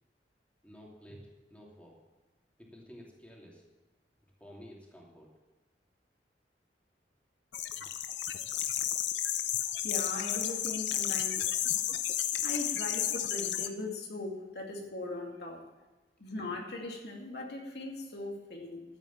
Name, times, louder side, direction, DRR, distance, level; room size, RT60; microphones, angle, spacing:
voice 1, 0.6-2.0 2.6-3.7 4.4-5.3 7.7-7.9 12.3-12.4, equal, 5° left, -3 dB, 2.7 m, -52 dB
sound 1, 7.5-13.7, left 11 dB, 85° left, 0.8 m, -32 dB
voice 2, 9.8-11.7 12.4-15.6 16.2-18.8, left 2 dB, 65° left, 0 dB, 2.5 m, -39 dB
13.5 x 8.7 x 7.3 m, 1.1 s
head